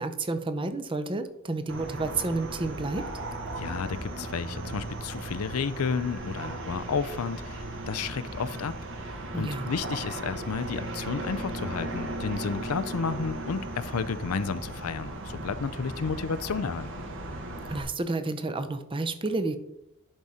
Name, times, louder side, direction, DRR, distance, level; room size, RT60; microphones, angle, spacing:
voice 1, 0.0-3.1 9.3-9.7 17.7-19.6, right 3 dB, 25° right, 9 dB, 0.6 m, -30 dB
sound 1, 1.7-17.8, right 2 dB, 60° right, 1.4 m, -37 dB
voice 2, 3.6-8.7 9.0-17.1, left 5 dB, 85° left, 14 dB, 0.5 m, -32 dB
11.0 x 4.2 x 4.9 m, 0.83 s
head